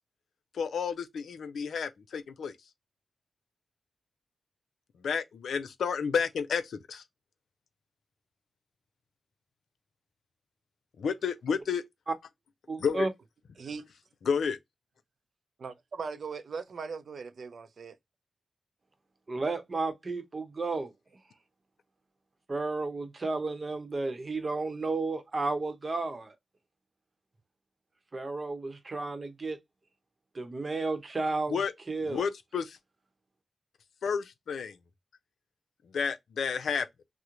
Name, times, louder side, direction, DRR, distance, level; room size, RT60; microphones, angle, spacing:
voice 1, 0.5-2.6 5.0-7.0 11.0-11.8 12.8-13.1 14.2-14.6 31.5-31.7 32.0-32.8 34.0-34.8 35.9-36.9, left 6 dB, 90° left, 0.4 m, -31 dB
voice 2, 12.7-13.1 19.3-20.9 22.5-26.3 28.1-29.6 30.3-31.6 31.9-32.2, right 3 dB, 45° right, 0.8 m, -32 dB
voice 3, 13.6-13.9 15.6-18.0, right 5 dB, 75° right, 0.4 m, -39 dB
2.9 x 2.0 x 3.6 m
cardioid pair, 65°, 0 cm